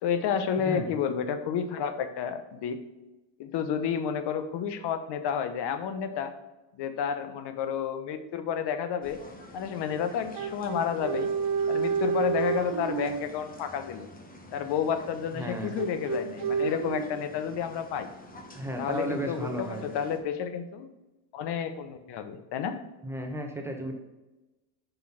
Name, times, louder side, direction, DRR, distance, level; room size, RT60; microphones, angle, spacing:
voice 1, 0.0-2.8 3.4-6.3 6.7-9.2 9.5-11.3 11.7-14.1 14.5-18.1 18.8-20.9 21.3-22.8, left 7 dB, 55° left, 10 dB, 1.1 m, -31 dB
voice 2, 0.6-0.9 15.3-15.8 18.5-19.9 23.0-23.9, equal, 5° right, 2 dB, 1.1 m, -34 dB
sound 1, 9.0-20.2, left 1 dB, 15° left, 1.1 m, -48 dB
sound 2, 10.3-13.2 15.8-17.1, right 6 dB, 50° right, 1.6 m, -29 dB
6.4 x 5.6 x 5.8 m, 1.1 s
cardioid pair, 125°, 50 cm